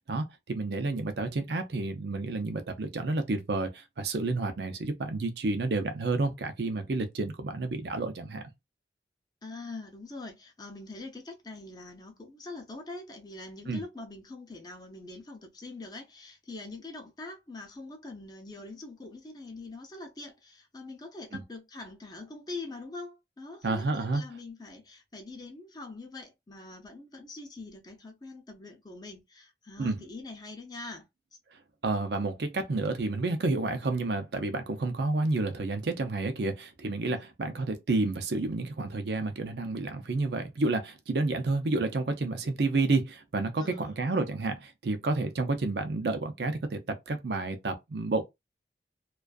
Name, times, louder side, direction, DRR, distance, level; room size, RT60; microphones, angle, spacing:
voice 1, 0.1-8.4 13.7-13.8 21.3-21.4 23.6-24.2 29.8-30.0 31.8-48.2, right 3 dB, 70° right, 0.5 m, -30 dB
voice 2, 9.4-31.1 37.1-37.3 43.6-44.0, left 3 dB, 25° left, 0.5 m, -44 dB
2.4 x 2.3 x 2.3 m
head